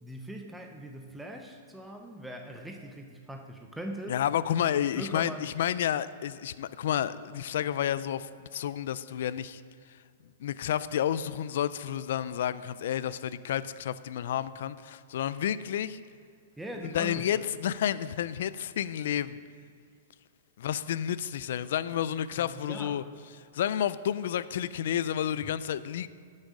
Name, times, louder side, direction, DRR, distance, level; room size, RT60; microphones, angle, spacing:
voice 1, 0.0-4.2 4.8-5.5 16.6-17.5 22.4-23.1, right 1 dB, 5° right, 3 dB, 0.5 m, -41 dB
voice 2, 4.1-9.6 10.4-16.0 16.8-19.4 20.6-23.0 23.5-26.1, left 10 dB, 55° left, 16 dB, 0.4 m, -30 dB
15.0 x 6.5 x 4.9 m, 2.2 s
supercardioid pair, 180°, 0 cm